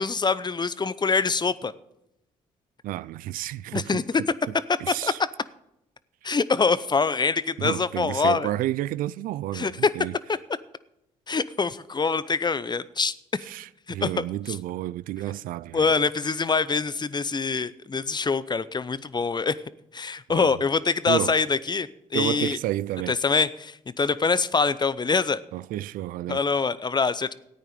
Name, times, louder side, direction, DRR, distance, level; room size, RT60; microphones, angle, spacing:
voice 1, 0.0-1.7 3.7-4.2 5.0-5.1 6.2-8.5 9.5-9.7 11.3-13.1 14.0-14.2 15.7-19.6 19.9-22.6 23.1-25.4 26.3-27.3, left 4 dB, 30° left, 0.7 m, -24 dB
voice 2, 2.8-4.0 4.8-5.2 6.2-6.3 7.6-10.1 13.4-15.9 20.3-20.6 21.1-21.4 22.1-23.2 25.5-26.4, right 14 dB, 75° right, 0.4 m, -31 dB
14.0 x 9.2 x 5.1 m
supercardioid pair, 55°, 14 cm